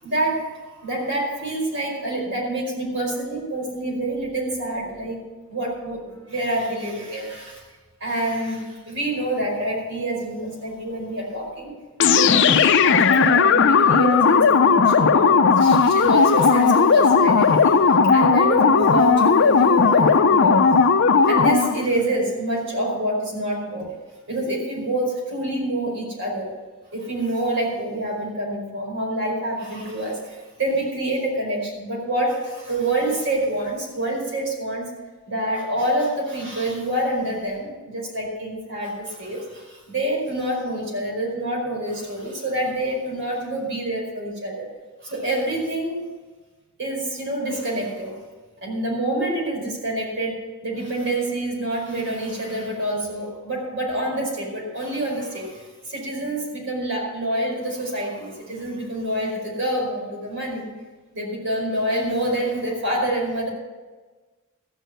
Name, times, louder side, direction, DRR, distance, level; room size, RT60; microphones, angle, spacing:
voice 1, 0.0-0.5 0.8-5.2 5.5-7.6 8.0-11.7 12.2-17.7 18.1-20.8 21.3-23.9 24.3-26.6 26.9-34.9 35.3-44.7 45.0-46.1 46.8-48.2 48.6-60.7 61.1-63.5, right 1 dB, 60° right, -2 dB, 5.1 m, -27 dB
sound 1, 12.0-21.8, left 5 dB, 55° left, 0.5 m, -16 dB
15.0 x 6.4 x 7.9 m, 1.3 s
head